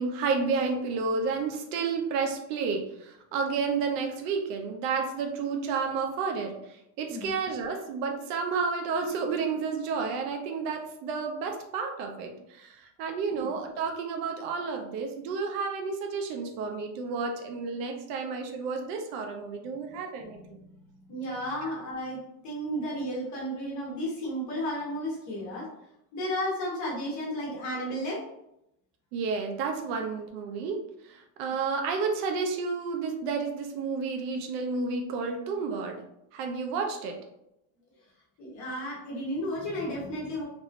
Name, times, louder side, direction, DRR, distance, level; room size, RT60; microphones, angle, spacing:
voice 1, 0.0-20.4 21.6-21.7 29.1-36.0 36.3-37.2, right 5 dB, 80° right, 3 dB, 0.8 m, -31 dB
voice 2, 21.1-25.7 26.1-28.2 38.4-40.4, equal, 35° left, -4 dB, 1.2 m, -33 dB
3.4 x 3.0 x 2.5 m, 0.81 s
cardioid pair, 165°, 47 cm